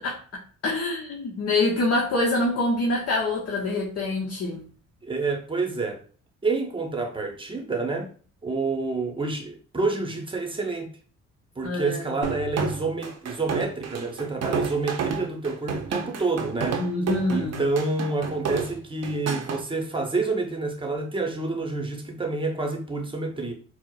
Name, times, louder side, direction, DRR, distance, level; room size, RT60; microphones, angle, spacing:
voice 1, 0.6-4.6 11.6-12.0 16.8-17.6, left 2 dB, 55° left, 0.8 m, -25 dB
voice 2, 5.0-6.0 6.4-8.1 8.4-10.9 11.6-16.8 17.3-23.5, right 3 dB, 15° right, 0.8 m, -28 dB
sound 1, 12.2-19.6, right 6 dB, 55° right, 0.6 m, -30 dB
4.4 x 2.1 x 2.3 m
cardioid pair, 90°, 30 cm